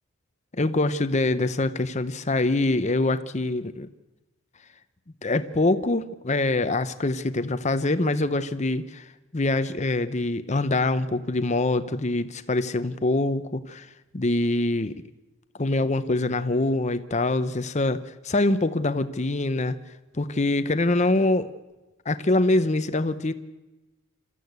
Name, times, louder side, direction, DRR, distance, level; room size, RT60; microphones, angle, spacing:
voice 1, 0.6-3.9 5.2-9.0 9.3-13.9 14.1-15.0 15.6-18.0 18.2-19.8 20.1-21.5 22.1-23.3, left 2 dB, 30° left, 11 dB, 0.8 m, -24 dB
27.0 x 13.5 x 8.2 m, 1.1 s
head